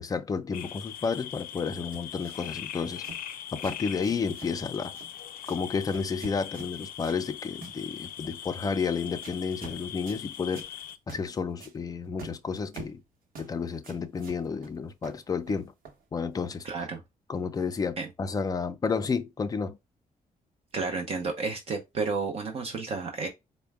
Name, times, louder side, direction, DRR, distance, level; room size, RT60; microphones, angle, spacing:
voice 1, 0.0-3.0 3.5-4.9 5.5-10.7 11.1-13.0 13.4-15.7 16.1-16.7 17.3-19.8, left 5 dB, 25° left, 0.4 m, -31 dB
sound 1, 0.5-11.0, left 10 dB, 85° left, 0.5 m, -41 dB
sound 2, 1.9-2.6 3.0-3.2 3.6-4.6 4.9-5.1 5.4-5.6 5.9-7.3 7.6-7.8 8.2-8.5 9.2-9.8 10.1-10.2 10.6-10.7 11.1-11.3 11.6-11.8 12.2-13.0 13.4-13.5 13.8-14.8 15.0-16.0, right 4 dB, 80° right, 0.9 m, -46 dB
voice 2, 16.6-17.0 18.0-18.1 20.7-23.3, right 4 dB, 45° right, 0.6 m, -31 dB
4.3 x 2.1 x 3.4 m
wide cardioid pair, 180°, 14 cm